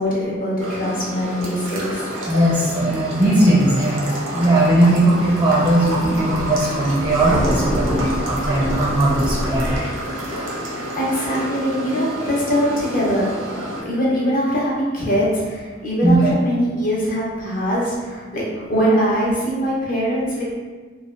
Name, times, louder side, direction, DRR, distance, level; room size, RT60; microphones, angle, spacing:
voice 1, 0.0-2.1 10.9-13.3 13.5-20.5, equal, 45° left, -6 dB, 0.8 m, -22 dB
sound 1, 0.6-13.8, right 1 dB, 85° right, 0.7 m, -29 dB
voice 2, 2.3-9.8 16.0-16.3, right 1 dB, 10° right, -8 dB, 0.5 m, -18 dB
Thunder, 5.0-9.8, equal, 80° left, 0.9 m, -27 dB
3.2 x 2.2 x 2.4 m, 1.4 s
head